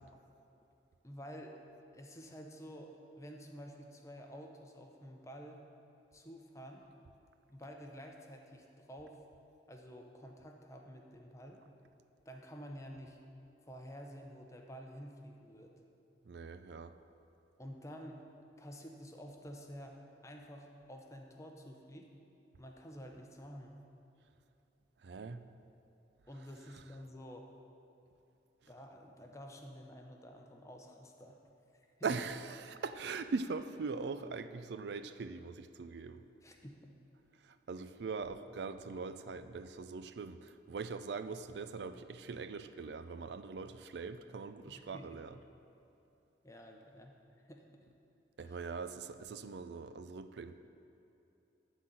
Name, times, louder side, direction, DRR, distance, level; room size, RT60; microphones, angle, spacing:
voice 1, 1.0-1.6 1.9-5.6 6.1-6.8 7.5-9.2 9.7-11.6 12.2-13.2 13.6-15.7 17.6-18.2 18.6-20.0 20.2-22.1 22.6-23.7 25.3-25.4 26.3-27.5 28.7-31.4 31.7-32.1 36.4-36.8 37.7-37.8 44.7-45.0 46.4-47.1 47.4-47.6 48.4-48.6, equal, 15° left, 2 dB, 0.7 m, -50 dB
voice 2, 16.2-17.0 25.0-25.4 26.7-26.8 32.0-36.2 37.4-45.4 48.4-50.5, right 4 dB, 70° right, 11 dB, 0.4 m, -41 dB
11.5 x 4.1 x 7.6 m, 2.9 s
head